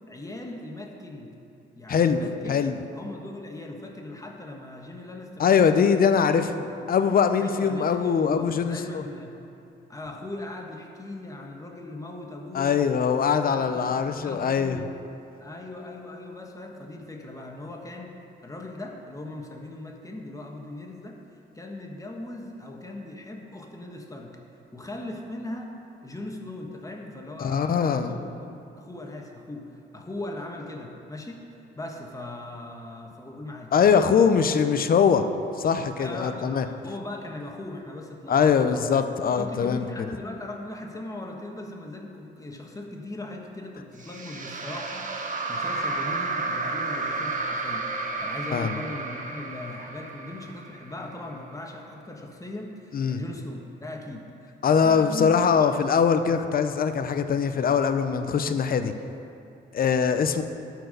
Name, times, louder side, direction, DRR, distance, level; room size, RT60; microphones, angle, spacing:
voice 1, 0.1-1.3 1.8-2.7 2.9-6.1 6.5-6.7 7.4-9.3 9.9-12.9 13.5-14.9 15.4-18.1 18.4-21.2 21.5-24.3 24.7-25.7 26.0-31.4 31.7-34.7 36.0-38.9 39.4-55.8, left 2 dB, 15° left, 1 dB, 1.4 m, -39 dB
voice 2, 1.9-2.8 5.4-6.4 6.9-9.0 12.5-14.8 27.4-28.1 33.7-35.2 35.6-36.6 38.3-39.9 48.5-48.7 52.9-53.2 54.6-58.9 59.7-60.4, left 6 dB, 45° left, 9 dB, 0.7 m, -22 dB
sound 1, 44.0-51.3, right 3 dB, 40° right, 1.2 m, -32 dB
12.0 x 4.7 x 6.5 m, 2.7 s
cardioid pair, 90°, 20 cm